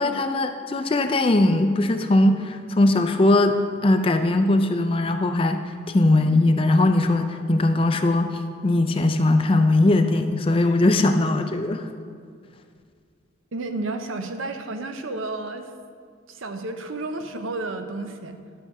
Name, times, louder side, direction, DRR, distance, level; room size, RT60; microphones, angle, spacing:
voice 1, 0.0-11.9, left 2 dB, 25° left, 7 dB, 0.4 m, -20 dB
voice 2, 13.5-15.7 16.3-18.4, right 2 dB, 80° right, 8 dB, 0.7 m, -32 dB
11.0 x 6.6 x 4.7 m, 2.1 s
head